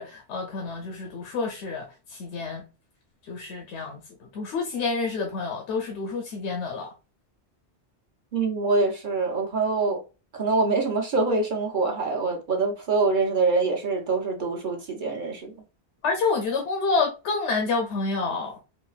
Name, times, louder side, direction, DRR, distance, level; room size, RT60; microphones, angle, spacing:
voice 1, 0.0-2.6 3.2-6.9 16.0-18.6, left 4 dB, 85° left, 0.9 m, -28 dB
voice 2, 8.3-10.0 10.3-15.5, right 3 dB, 50° right, 0.8 m, -25 dB
3.8 x 2.1 x 2.4 m
omnidirectional pair, 1.1 m